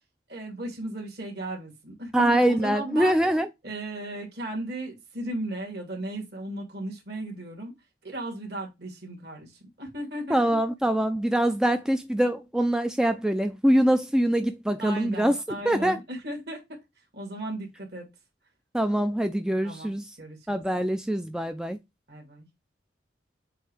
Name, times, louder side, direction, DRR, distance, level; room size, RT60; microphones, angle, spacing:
voice 1, 0.3-3.2 3.6-7.7 8.0-10.4 14.8-16.6 17.1-18.1 19.6-19.9 20.2-20.6 22.1-22.5, right 1 dB, 60° right, 2.7 m, -36 dB
voice 2, 2.1-3.5 10.3-15.4 15.6-16.0 18.7-20.1 20.5-21.8, right 1 dB, 5° right, 0.3 m, -24 dB
7.9 x 2.8 x 4.8 m
head